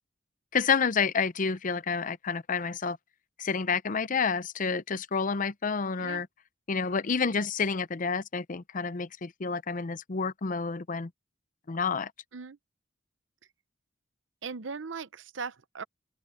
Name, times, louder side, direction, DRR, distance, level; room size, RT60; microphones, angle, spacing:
voice 1, 0.5-3.0 3.4-6.3 6.7-11.1 11.7-12.1, left 5 dB, 45° left, 0.6 m, -29 dB
voice 2, 14.4-15.8, right 5 dB, 80° right, 0.8 m, -38 dB
open air
head